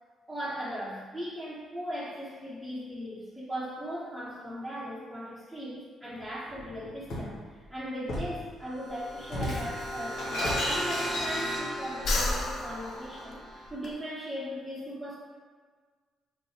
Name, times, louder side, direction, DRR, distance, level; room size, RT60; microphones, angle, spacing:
voice 1, 0.3-15.2, equal, ahead, -9 dB, 0.9 m, -38 dB
Shatter, 6.5-7.3 8.1-8.4 9.3-11.9, left 1 dB, 80° left, 1.0 m, -33 dB
sound 1, 8.6-13.7, equal, 85° right, 0.8 m, -38 dB
Breathing, 8.9-11.6 11.9-13.9, left 2 dB, 60° left, 0.5 m, -34 dB
3.0 x 2.2 x 4.1 m, 1.5 s
cardioid pair, 90°, 0 cm